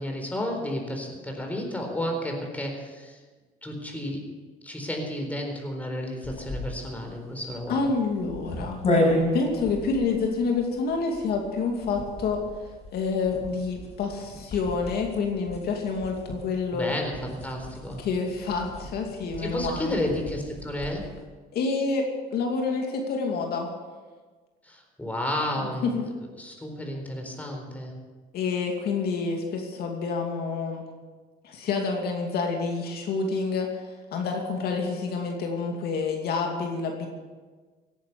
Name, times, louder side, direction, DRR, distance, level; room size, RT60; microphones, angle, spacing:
voice 1, 0.0-3.2 3.6-4.2 4.6-7.8 16.7-18.0 19.4-21.1 24.6-25.9 26.4-27.9, left 1 dB, 10° left, 2 dB, 4.2 m, -32 dB
sound 1, 6.2-21.1, left 1 dB, 40° left, 5.8 m, -33 dB
voice 2, 7.7-8.8 9.3-12.6 12.9-17.0 18.0-20.0 21.5-23.7 25.8-26.0 28.3-30.8 31.4-37.1, left 4 dB, 70° left, 1 dB, 2.6 m, -28 dB
17.5 x 11.0 x 6.9 m, 1.4 s
cardioid pair, 110°, 17 cm